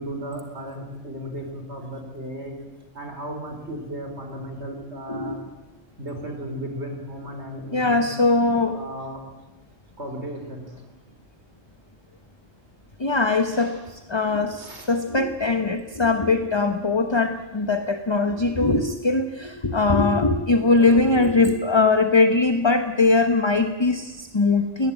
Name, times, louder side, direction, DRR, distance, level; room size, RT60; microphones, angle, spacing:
voice 1, 0.0-2.6 2.9-5.4 6.0-8.1 8.7-9.2 10.0-10.9 13.6-13.9 14.6-14.9 20.8-21.1, right 1 dB, 60° right, 4 dB, 4.9 m, -35 dB
voice 2, 7.7-8.8 13.0-24.9, left 3 dB, 20° left, 8 dB, 1.1 m, -21 dB
22.0 x 19.0 x 9.1 m, 1.1 s
omnidirectional pair, 1.3 m